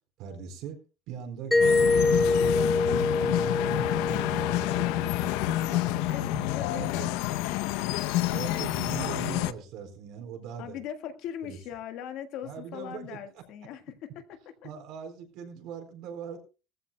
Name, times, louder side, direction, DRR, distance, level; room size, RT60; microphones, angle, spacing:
voice 1, 0.2-0.8 1.1-5.4 5.6-6.4 6.7-7.2 8.3-10.8 11.4-11.6 12.4-13.4 14.6-16.4, right 8 dB, 65° right, 5 dB, 4.3 m, -40 dB
Mallet percussion, 1.5-6.1, left 3 dB, 5° left, 0.6 m, -26 dB
sound 1, 1.6-9.5, left 15 dB, 90° left, 0.6 m, -28 dB
voice 2, 6.1-8.0 10.6-14.7, left 10 dB, 60° left, 8 dB, 1.6 m, -40 dB
19.5 x 14.5 x 2.2 m, 0.32 s
cardioid pair, 165°, 0 cm